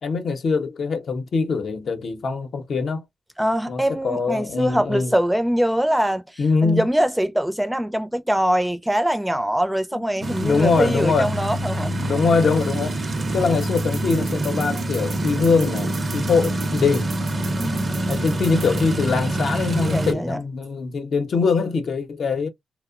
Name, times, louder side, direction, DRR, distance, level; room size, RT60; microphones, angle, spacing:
voice 1, 0.0-3.0 3.7-5.1 6.4-6.9 9.9-11.3 12.0-12.9 13.3-17.1 18.1-22.5, left 4 dB, 70° left, 0.7 m, -23 dB
voice 2, 3.4-6.2 6.6-11.9 17.6-18.1 19.9-20.4, equal, 5° right, 0.5 m, -23 dB
sound 1, 10.2-20.1, right 1 dB, 45° right, 0.6 m, -26 dB
sound 2, 13.6-18.9, right 5 dB, 85° right, 0.6 m, -39 dB
2.7 x 2.0 x 2.4 m
cardioid pair, 60°, 0 cm